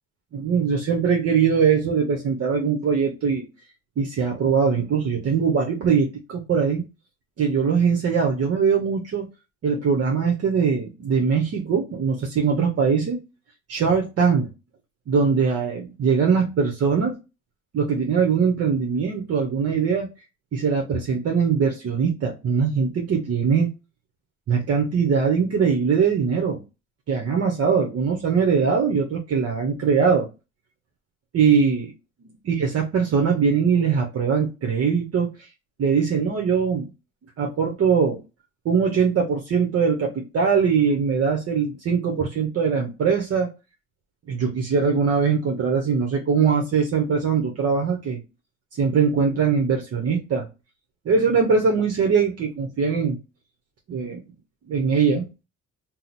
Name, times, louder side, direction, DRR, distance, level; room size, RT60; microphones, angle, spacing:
voice 1, 0.3-3.4 4.0-6.9 7.4-9.3 9.6-13.2 13.7-14.5 15.1-17.1 17.7-20.1 20.5-23.7 24.5-26.6 27.1-30.3 31.3-31.9 32.2-35.3 35.8-36.9 37.4-38.2 38.6-43.5 44.3-48.2 48.8-50.5 51.0-53.2 53.9-54.2 54.7-55.3, right 6 dB, 50° right, 1 dB, 0.8 m, -21 dB
2.9 x 2.0 x 3.9 m, 0.28 s
cardioid pair, 90°, 30 cm